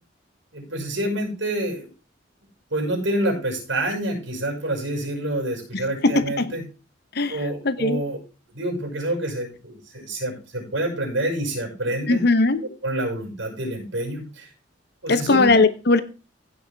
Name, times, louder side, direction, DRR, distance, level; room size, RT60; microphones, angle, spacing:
voice 1, 0.5-1.9 2.7-6.6 7.3-8.2 8.5-12.2 12.8-14.5 15.0-15.6, right 1 dB, 85° right, 5.6 m, -27 dB
voice 2, 5.7-6.5 7.2-7.4 7.6-8.0 12.1-12.6 15.1-16.0, left 3 dB, 60° left, 1.0 m, -19 dB
16.0 x 6.4 x 3.5 m
head